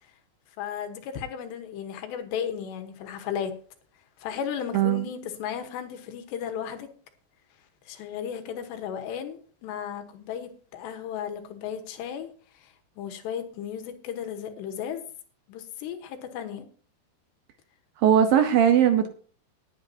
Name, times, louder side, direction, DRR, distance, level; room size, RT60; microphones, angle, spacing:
voice 1, 0.6-3.5 4.2-6.9 7.9-12.3 12.6-15.0 15.5-16.7, left 8 dB, 85° left, 3.4 m, -35 dB
voice 2, 4.7-5.1 18.0-19.1, right 9 dB, 75° right, 2.3 m, -19 dB
19.0 x 8.8 x 2.8 m
omnidirectional pair, 4.9 m